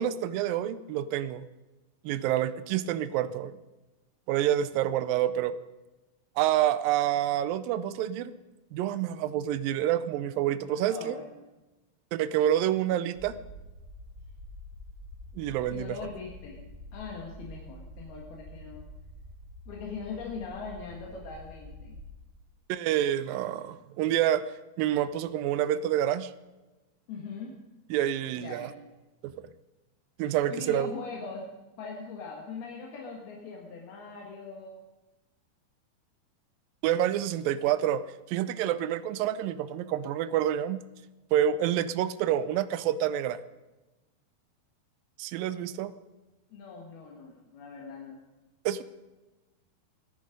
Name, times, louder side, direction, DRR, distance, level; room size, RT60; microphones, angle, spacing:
voice 1, 0.0-1.5 2.0-3.5 4.3-5.5 6.4-8.3 8.7-11.2 12.1-13.4 15.4-16.0 22.7-24.5 24.8-26.3 27.9-28.7 29.2-29.3 30.2-30.9 36.8-38.0 38.3-40.8 41.3-43.4 45.2-45.9 48.7-48.8, right 11 dB, 85° right, 14 dB, 2.0 m, -28 dB
voice 2, 10.8-11.3 15.7-16.6 16.9-18.9 19.7-22.0 27.1-27.5 28.4-28.7 30.5-31.4 31.8-34.8 46.5-48.2, left 5 dB, 70° left, -2 dB, 3.5 m, -41 dB
sound 1, 13.1-22.1, left 1 dB, 25° right, 3.2 m, -47 dB
21.0 x 10.5 x 5.2 m, 1.1 s
omnidirectional pair, 4.7 m